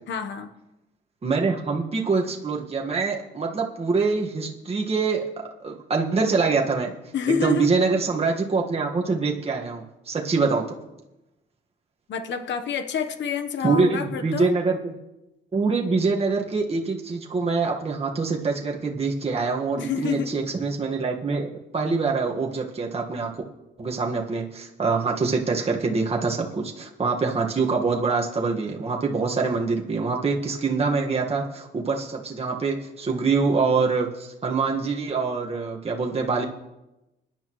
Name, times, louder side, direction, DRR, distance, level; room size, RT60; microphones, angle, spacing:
voice 1, 0.1-0.5 7.1-7.7 12.1-14.5 19.7-20.3, left 6 dB, 65° left, 7 dB, 1.1 m, -28 dB
voice 2, 1.2-5.2 5.6-6.9 7.3-10.6 13.6-14.9 15.5-23.3 23.8-36.4, right 4 dB, 30° right, 0 dB, 1.6 m, -25 dB
21.5 x 10.5 x 3.1 m, 0.98 s
cardioid pair, 90°, 20 cm